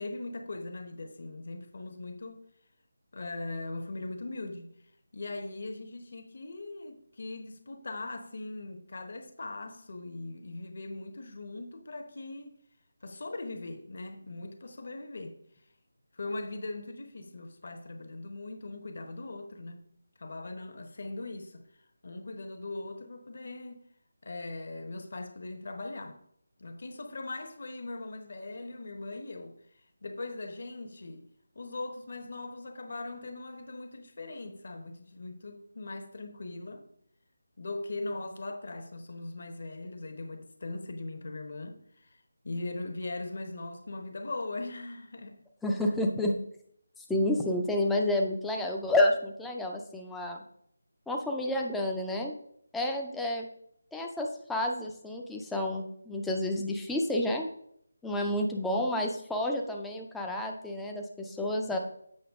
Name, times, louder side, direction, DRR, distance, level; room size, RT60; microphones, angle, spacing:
voice 1, 0.0-2.4 3.1-4.7 5.1-12.6 13.0-15.4 16.2-19.8 20.2-21.6 22.0-23.8 24.2-26.2 26.6-29.5 30.0-31.3 31.5-36.8 37.6-42.1 42.4-45.4, left 2 dB, 45° left, 1.0 m, -40 dB
voice 2, 45.6-46.3 47.1-50.4 51.1-52.3 52.7-53.5 53.9-57.5 58.0-61.8, left 1 dB, ahead, 0.4 m, -30 dB
7.8 x 5.8 x 3.6 m
figure-of-eight pair, 175°, 0 cm